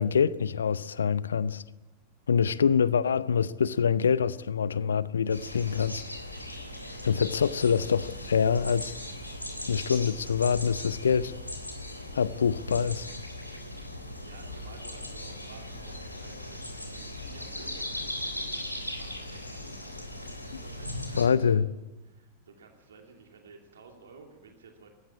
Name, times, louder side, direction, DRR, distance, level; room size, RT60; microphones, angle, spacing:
voice 1, 0.0-1.6 2.3-6.0 7.0-9.0 9.7-11.3 12.1-13.1 20.5-20.6 21.1-21.7, left 6 dB, 70° left, 0.7 m, -25 dB
sound 1, 5.3-21.2, left 1 dB, 85° left, 3.5 m, -39 dB
voice 2, 14.2-18.6 18.9-21.6 22.0-24.9, right 5 dB, 65° right, 2.7 m, -53 dB
20.5 x 15.0 x 9.7 m
figure-of-eight pair, 90°, 0 cm